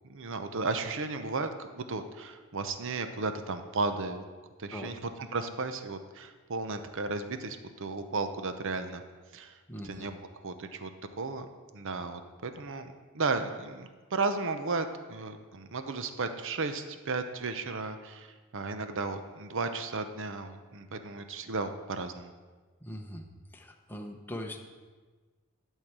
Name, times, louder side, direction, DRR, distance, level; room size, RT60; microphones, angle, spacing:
voice 1, 0.1-4.2 4.6-5.0 5.3-9.0 9.3-9.6 9.8-10.9 11.2-11.5 11.7-22.3, right 3 dB, 60° right, 8 dB, 0.8 m, -34 dB
voice 2, 9.7-10.1 22.8-23.2 23.5-24.6, left 1 dB, 10° left, 1 dB, 1.0 m, -41 dB
12.0 x 4.6 x 8.0 m, 1.4 s
head